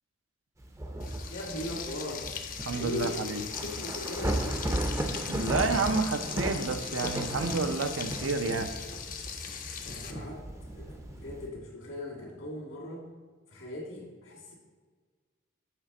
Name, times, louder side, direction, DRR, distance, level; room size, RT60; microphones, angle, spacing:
Thunder / Rain, 0.6-11.5, right 1 dB, 15° right, 0.5 m, -36 dB
Frying (food), 1.0-10.1, left 7 dB, 40° left, 0.6 m, -39 dB
voice 1, 1.3-2.3 2.7-4.9 9.8-10.4 10.7-13.1 13.5-14.5, left 1 dB, 75° left, -2 dB, 2.0 m, -39 dB
voice 2, 2.6-3.4 5.3-8.7, right 4 dB, 75° right, 8 dB, 0.5 m, -30 dB
7.6 x 3.3 x 5.9 m, 1.5 s
head